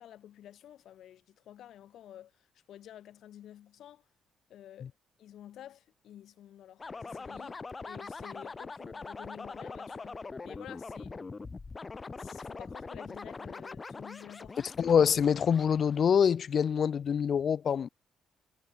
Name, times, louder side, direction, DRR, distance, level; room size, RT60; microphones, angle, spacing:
voice 1, 0.0-4.0 4.5-4.9 5.2-11.2 12.2-14.6, left 11 dB, 75° left, 1.7 m, -51 dB
sound 1, 6.8-16.3, left 4 dB, 30° left, 2.3 m, -43 dB
voice 2, 14.8-17.9, left 7 dB, 55° left, 0.5 m, -25 dB
cardioid pair, 90°, 0 cm